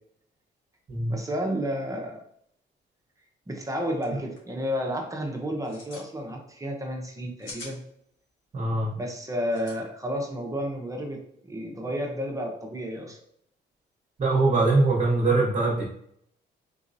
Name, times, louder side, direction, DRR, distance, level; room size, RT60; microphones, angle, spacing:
voice 1, 1.1-2.2 3.5-7.8 9.0-13.2, equal, 15° right, 1 dB, 0.7 m, -31 dB
sound 1, 3.6-3.7 3.9-4.1 4.4-4.7 5.5-6.1 7.1-7.8 9.5-9.8, left 3 dB, 75° left, 1.4 m, -43 dB
voice 2, 8.5-9.0 14.2-15.8, right 3 dB, 35° right, -5 dB, 1.0 m, -22 dB
3.9 x 2.8 x 2.6 m, 0.69 s
cardioid pair, 90°, 20 cm